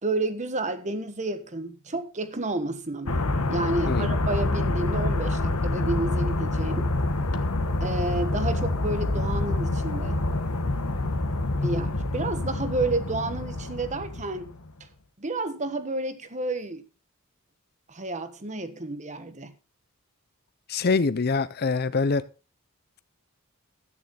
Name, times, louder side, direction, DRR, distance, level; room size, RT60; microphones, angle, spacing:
voice 1, 0.0-3.2 3.5-6.9 7.8-10.2 11.6-14.5 15.2-16.8 17.9-19.5, right 2 dB, 35° right, 1.3 m, -30 dB
sound 1, 3.1-14.7, left 2 dB, 90° left, 1.4 m, -27 dB
voice 2, 20.7-22.3, left 4 dB, 45° left, 0.6 m, -24 dB
12.5 x 9.4 x 4.1 m
head